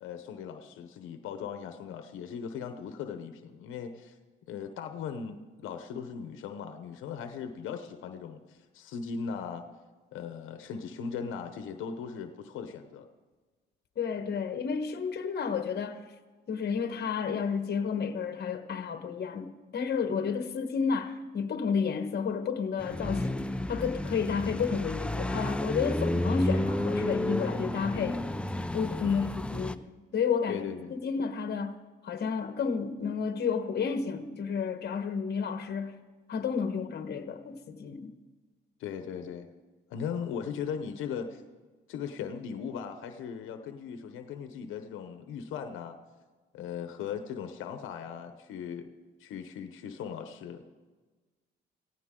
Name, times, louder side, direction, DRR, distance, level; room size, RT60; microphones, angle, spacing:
voice 1, 0.0-4.2 4.5-9.6 10.1-13.1 29.0-29.3 30.5-31.0 38.8-39.5 39.9-41.4 41.9-46.0 46.5-48.9 49.2-50.7, left 7 dB, 90° left, 0.9 m, -38 dB
voice 2, 14.0-16.0 16.5-28.2 28.7-29.8 30.1-30.6 30.9-36.0 36.3-38.1, left 6 dB, 55° left, 1.3 m, -31 dB
sound 1, 22.8-29.7, left 1 dB, 5° left, 0.5 m, -31 dB
17.0 x 16.0 x 3.8 m
cardioid pair, 90°, 20 cm